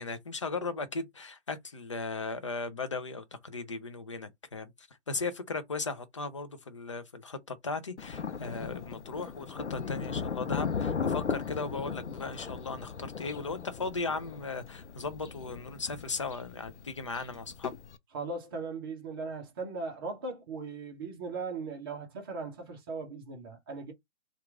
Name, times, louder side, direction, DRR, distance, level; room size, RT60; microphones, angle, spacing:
voice 1, 0.0-4.7 5.1-17.7, left 3 dB, 30° left, 0.4 m, -37 dB
Thunder, 8.0-18.0, left 6 dB, 85° left, 0.6 m, -37 dB
voice 2, 18.1-23.9, right 4 dB, 20° right, 0.7 m, -38 dB
2.8 x 2.4 x 3.5 m
figure-of-eight pair, 140°, 34 cm